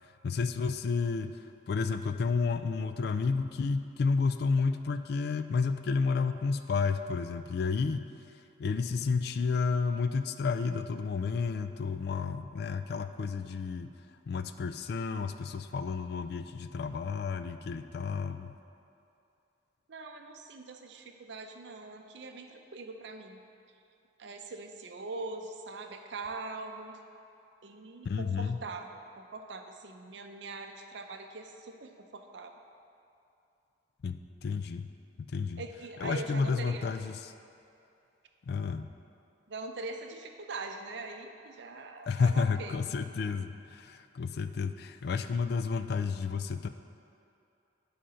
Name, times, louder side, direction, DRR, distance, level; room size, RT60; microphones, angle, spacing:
voice 1, 0.2-1.3 1.7-8.0 8.6-13.9 14.3-18.5 28.0-28.6 34.0-34.9 35.3-35.6 36.0-37.1 38.5-38.9 42.1-46.7, left 5 dB, 55° left, 10 dB, 0.3 m, -31 dB
voice 2, 19.9-23.4 24.2-27.0 27.6-32.5 35.6-37.0 39.5-42.8, right 3 dB, 65° right, 5 dB, 0.6 m, -42 dB
7.7 x 5.0 x 5.6 m, 2.7 s
head